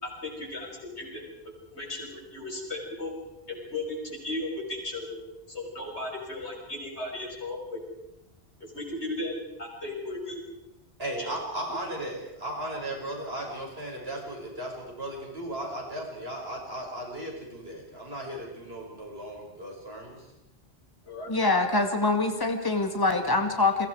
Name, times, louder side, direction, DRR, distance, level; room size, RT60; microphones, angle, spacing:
voice 1, 0.0-1.2 1.7-3.1 3.5-5.2 5.5-7.8 8.7-10.4 11.2-11.3 21.1-21.3, left 2 dB, 85° left, 0 dB, 6.3 m, -36 dB
voice 2, 11.0-20.3, right 1 dB, 65° right, 0 dB, 6.6 m, -36 dB
voice 3, 21.3-23.9, left 3 dB, 20° left, 5 dB, 2.2 m, -24 dB
30.0 x 23.5 x 4.9 m, 0.91 s
omnidirectional pair, 1.1 m